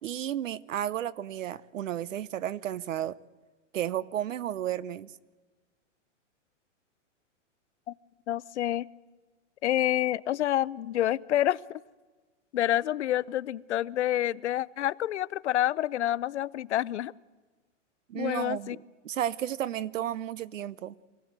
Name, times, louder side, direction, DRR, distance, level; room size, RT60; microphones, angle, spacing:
voice 1, 0.0-3.2 3.7-5.1 18.1-18.8 19.0-20.9, right 11 dB, 90° right, 0.9 m, -33 dB
voice 2, 8.3-8.9 9.6-11.8 12.5-17.1 18.1-18.8, left 12 dB, 65° left, 0.6 m, -28 dB
24.0 x 16.0 x 8.0 m
hypercardioid pair, 180°, 37 cm